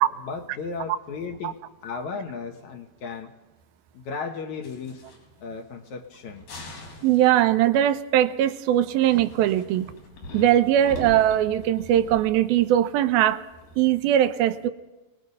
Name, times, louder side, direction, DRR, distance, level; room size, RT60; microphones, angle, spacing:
voice 1, 0.0-1.6 1.8-3.3 3.9-5.0 5.4-6.4, left 5 dB, 60° left, 4 dB, 2.3 m, -35 dB
sound 1, 4.6-5.5 5.8-5.9 6.3-7.6 8.8-13.9, left 1 dB, 75° left, 5.9 m, -42 dB
voice 2, 7.0-9.9 10.3-13.4 13.8-14.7, right 12 dB, 85° right, 10 dB, 2.7 m, -20 dB
26.0 x 20.0 x 5.5 m, 1.1 s
omnidirectional pair, 4.2 m